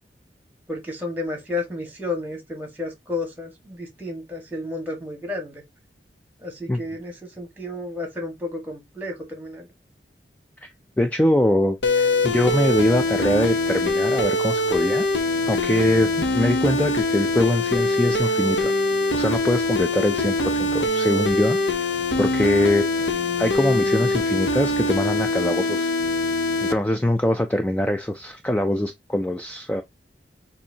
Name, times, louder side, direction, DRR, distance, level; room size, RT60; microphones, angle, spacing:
voice 1, 0.7-5.6 6.4-9.7, left 2 dB, 10° right, 1.5 m, -32 dB
voice 2, 11.0-15.1 15.5-18.7 19.1-23.1 23.4-25.9 26.6-29.8, left 1 dB, 10° left, 0.3 m, -23 dB
sound 1, 11.8-26.7, left 2 dB, 80° left, 0.8 m, -23 dB
7.0 x 2.7 x 2.7 m
head